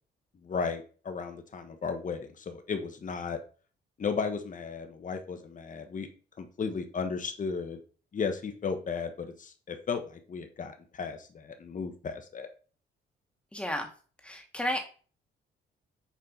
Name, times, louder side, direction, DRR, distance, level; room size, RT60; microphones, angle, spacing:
voice 1, 0.4-3.4 4.0-6.1 6.4-7.8 8.1-12.5, left 5 dB, 40° left, 6 dB, 1.4 m, -35 dB
voice 2, 13.5-13.9 14.2-14.8, left 1 dB, 5° left, 3 dB, 2.3 m, -32 dB
7.4 x 4.3 x 5.5 m, 0.39 s
cardioid pair, 90°, 20 cm